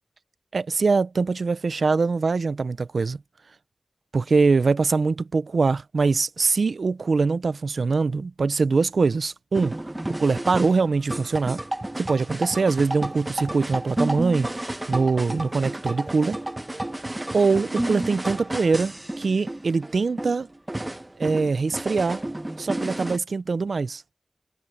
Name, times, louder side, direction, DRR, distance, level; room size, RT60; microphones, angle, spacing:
voice 1, 0.5-3.2 4.1-9.8 10.2-11.6 12.0-16.4 17.3-20.5 21.2-22.2 22.6-24.0, right 4 dB, 85° right, 0.5 m, -23 dB
sound 1, 9.5-23.2, right 1 dB, 20° right, 1.1 m, -31 dB
wide cardioid pair, 80°, 0 cm